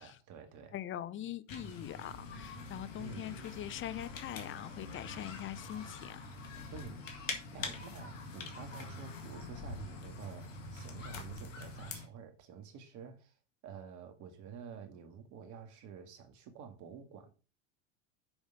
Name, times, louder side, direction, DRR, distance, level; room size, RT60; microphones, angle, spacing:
voice 1, 0.0-0.7 3.0-3.4 6.7-7.0 7.5-13.3 13.6-17.3, right 6 dB, 50° right, 2.1 m, -49 dB
voice 2, 0.7-6.2 6.5-6.6 7.6-7.7, left 11 dB, 35° left, 0.7 m, -43 dB
sound 1, 1.5-12.1, left 3 dB, 85° left, 1.9 m, -45 dB
7.2 x 5.4 x 5.1 m
hypercardioid pair, 95°, 37 cm